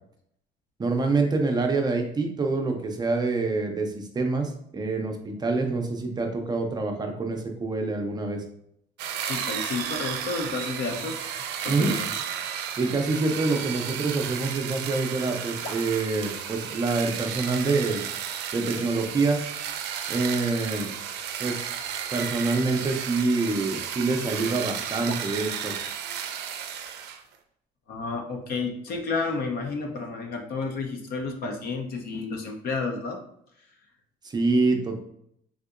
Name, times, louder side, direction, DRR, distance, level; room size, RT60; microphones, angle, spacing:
voice 1, 0.8-8.4 11.7-12.0 12.8-18.0 18.5-19.4 20.1-20.9 21.4-21.6 22.1-25.7 34.2-35.0, right 3 dB, 25° right, 3 dB, 0.5 m, -26 dB
sound 1, 9.0-27.2, right 8 dB, 80° right, 0.4 m, -33 dB
voice 2, 9.2-11.3 11.6-12.1 12.4-12.7 15.6-15.8 25.1-25.3 27.9-33.2, left 4 dB, 65° left, 4 dB, 0.7 m, -31 dB
3.6 x 2.7 x 2.4 m, 0.71 s
cardioid pair, 110°, 17 cm